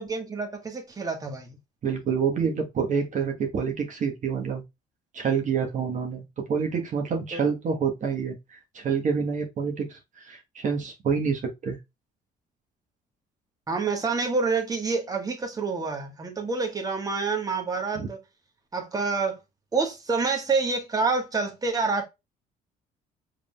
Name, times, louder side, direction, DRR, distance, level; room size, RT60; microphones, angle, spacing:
voice 1, 0.0-1.6 7.3-7.4 13.7-18.2 18.7-19.4 19.7-22.1, right 4 dB, 20° right, 1.4 m, -27 dB
voice 2, 1.8-4.6 5.1-11.8 17.9-18.1, right 6 dB, 45° right, 1.3 m, -27 dB
5.4 x 3.7 x 2.3 m
cardioid pair, 110°, 17 cm